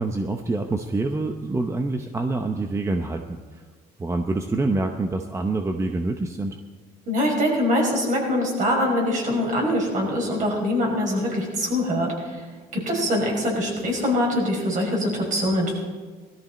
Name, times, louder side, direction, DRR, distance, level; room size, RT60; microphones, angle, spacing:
voice 1, 0.0-3.6 4.0-6.6, right 2 dB, 15° right, 5 dB, 0.8 m, -26 dB
voice 2, 7.1-12.4 12.7-15.8, left 1 dB, 50° right, -1 dB, 5.6 m, -23 dB
18.5 x 13.5 x 4.3 m, 1.4 s
cardioid pair, 110°, 17 cm